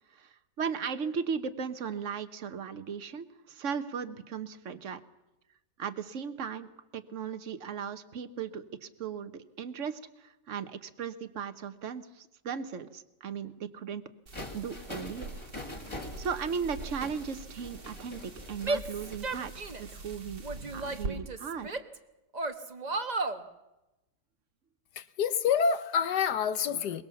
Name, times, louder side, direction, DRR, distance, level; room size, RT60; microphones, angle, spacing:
voice 1, 0.1-5.0 5.8-14.0 14.5-15.3 16.2-20.4 20.7-21.7, right 6 dB, 45° right, 1.4 m, -37 dB
sound 1, 14.3-19.2, left 1 dB, 15° left, 2.1 m, -44 dB
sound 2, 14.3-21.1, right 3 dB, 65° right, 2.6 m, -44 dB
Female speech woman speaking / Yell, 18.6-20.0 20.4-22.0 22.3-23.4, right 3 dB, 25° right, 1.1 m, -34 dB
voice 2, 25.0-27.0, left 7 dB, 65° left, 1.5 m, -27 dB
23.0 x 22.0 x 7.1 m
omnidirectional pair, 1.9 m